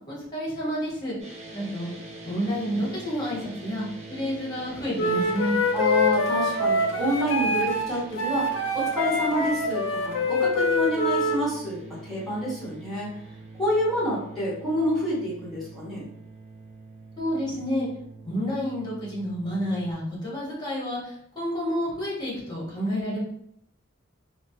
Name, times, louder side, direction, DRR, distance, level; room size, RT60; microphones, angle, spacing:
voice 1, 0.1-1.2 1.5-1.9 2.2-5.6 17.2-17.9 18.2-23.2, equal, 20° left, -5 dB, 1.1 m, -29 dB
sound 1, 1.2-19.9, right 2 dB, 35° right, 0.7 m, -44 dB
Wind instrument woodwind instrument, 4.9-11.4, left 2 dB, 65° left, 0.5 m, -25 dB
voice 2, 5.7-13.1 13.6-16.0, equal, ahead, -7 dB, 1.2 m, -28 dB
3.1 x 2.1 x 2.7 m, 0.71 s
head